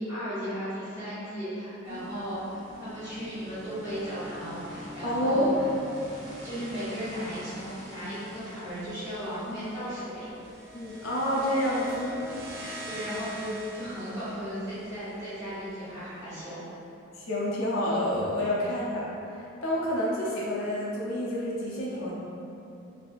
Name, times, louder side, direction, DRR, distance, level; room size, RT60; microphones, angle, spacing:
voice 1, 0.0-5.5 6.4-10.3 12.8-16.6, equal, 10° right, -21 dB, 1.4 m, -36 dB
sound 1, 1.8-16.0, equal, 75° right, 0.7 m, -44 dB
voice 2, 5.0-5.5 10.7-12.2 12.6-12.8 17.2-19.1 19.3-22.1, equal, 80° left, -6 dB, 0.5 m, -28 dB
3.3 x 2.7 x 2.3 m, 2.8 s
head